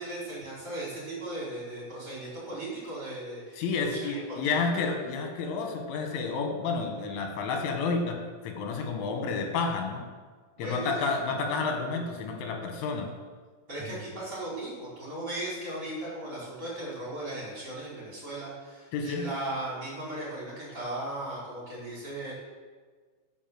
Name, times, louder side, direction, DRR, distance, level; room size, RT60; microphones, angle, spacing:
voice 1, 0.0-4.6 10.6-11.1 13.7-22.3, right 1 dB, 20° right, -7 dB, 5.2 m, -37 dB
voice 2, 3.6-8.2 8.4-10.0 10.6-13.1 13.8-13.9 18.9-19.3, left 4 dB, 80° left, 3 dB, 4.1 m, -30 dB
12.0 x 7.8 x 7.9 m, 1.5 s
omnidirectional pair, 5.5 m